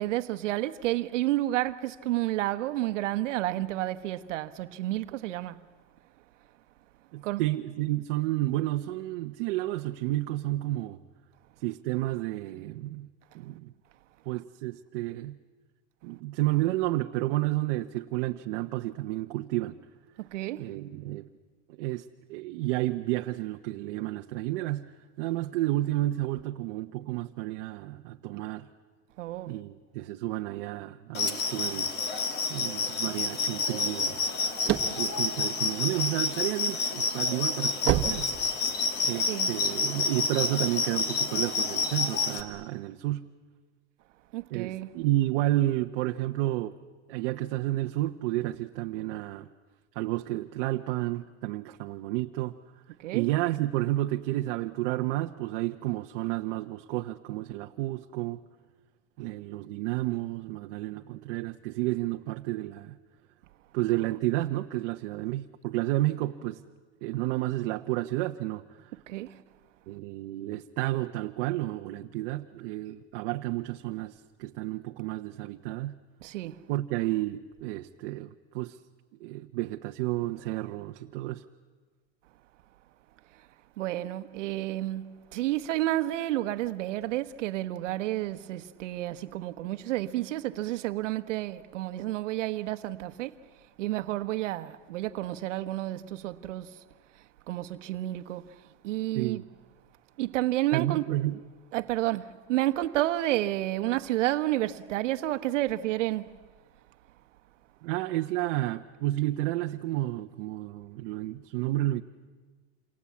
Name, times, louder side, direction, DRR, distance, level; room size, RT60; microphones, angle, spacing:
voice 1, 0.0-5.6 7.2-7.4 20.2-20.7 29.2-29.5 39.1-39.5 44.3-44.9 53.0-53.2 69.1-69.4 76.2-76.6 83.8-93.3 93.8-96.8 97.5-98.5 98.8-99.4 100.2-101.0 101.7-106.3, right 15 dB, 75° right, 1.2 m, -30 dB
voice 2, 7.1-11.0 11.6-13.1 13.3-13.7 14.2-15.4 16.0-19.8 20.6-21.3 21.8-28.7 29.5-31.9 32.5-34.2 35.0-38.3 39.0-43.3 44.5-46.8 47.1-49.5 49.9-52.6 53.1-58.4 59.2-63.0 63.7-66.6 67.0-69.0 69.9-76.0 76.7-78.8 79.2-81.4 99.1-99.5 100.7-101.4 107.8-112.0, right 16 dB, 50° right, 0.9 m, -31 dB
sound 1, 31.1-42.4, left 4 dB, 25° left, 1.9 m, -29 dB
sound 2, 34.2-36.3 36.8-39.0, right 12 dB, 30° right, 1.5 m, -29 dB
28.0 x 24.5 x 8.5 m
supercardioid pair, 160°, 37 cm